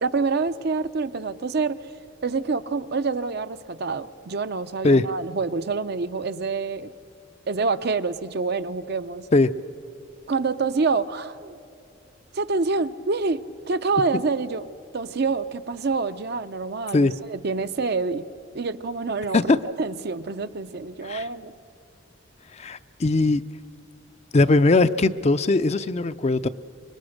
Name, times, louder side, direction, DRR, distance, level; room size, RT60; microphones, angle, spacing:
voice 1, 0.0-1.9 2.2-6.9 7.5-9.3 10.3-11.6 12.3-14.7 14.9-18.3 18.5-21.5, right 4 dB, 55° right, 11 dB, 0.6 m, -27 dB
voice 2, 22.6-23.4 24.3-26.5, left 3 dB, 35° left, 12 dB, 0.5 m, -20 dB
25.5 x 21.5 x 6.5 m, 2.6 s
head